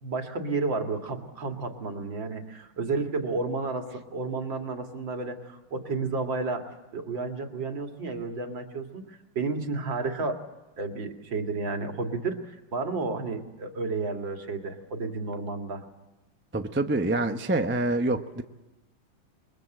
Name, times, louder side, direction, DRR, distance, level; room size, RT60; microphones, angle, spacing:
voice 1, 0.0-10.5 10.8-15.8, right 3 dB, 60° right, 4 dB, 2.9 m, -32 dB
voice 2, 16.5-18.4, right 2 dB, 15° right, 6 dB, 0.4 m, -26 dB
28.5 x 22.5 x 7.8 m, 1.1 s
omnidirectional pair, 2.3 m